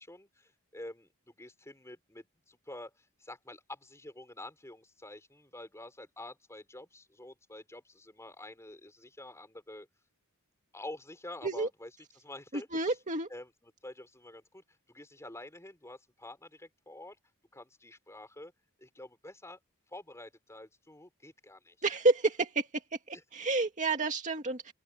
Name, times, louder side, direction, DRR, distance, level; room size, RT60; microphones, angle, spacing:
voice 1, 0.0-9.9 10.7-11.9 12.2-13.0 13.3-14.6 14.9-17.2 17.5-18.5 18.8-19.6 19.9-21.7, left 1 dB, 15° left, 4.5 m, -48 dB
voice 2, 12.5-13.3 21.8-24.7, right 3 dB, 35° right, 2.1 m, -30 dB
open air
head